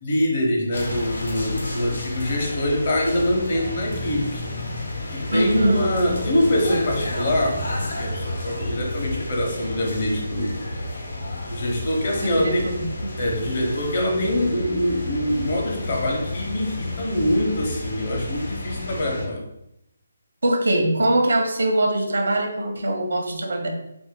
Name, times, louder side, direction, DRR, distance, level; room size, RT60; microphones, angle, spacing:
voice 1, 0.0-4.4 5.1-7.6 8.0-10.6 11.5-12.7 13.2-19.4, left 1 dB, 40° left, -1 dB, 0.8 m, -24 dB
sound 1, 0.7-19.3, left 1 dB, 70° left, 0.9 m, -31 dB
voice 2, 5.3-5.9 12.2-13.1 20.4-23.7, right 1 dB, 85° right, 3 dB, 0.7 m, -22 dB
2.9 x 2.6 x 3.7 m, 0.82 s
hypercardioid pair, 170°, 0 cm